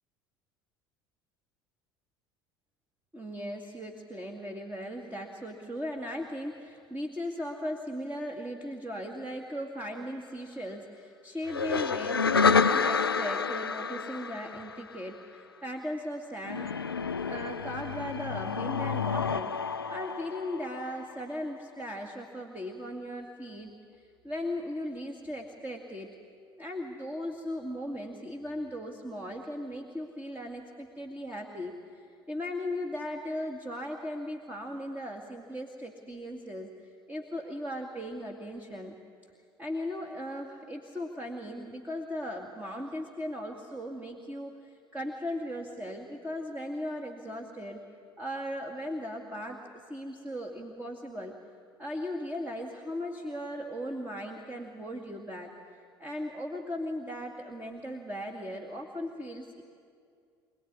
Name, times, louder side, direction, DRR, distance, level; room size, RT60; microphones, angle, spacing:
voice 1, 3.1-16.7 17.3-19.6 19.9-23.7 24.2-26.1 26.6-36.7 37.1-39.0 39.6-47.8 48.2-51.4 51.8-55.5 56.0-59.6, equal, 15° right, 1 dB, 2.3 m, -37 dB
sound 1, 11.5-15.1 16.5-21.1, left 5 dB, 90° left, 0.5 m, -29 dB
26.0 x 18.0 x 9.8 m, 2.3 s
figure-of-eight pair, 65°, 12 cm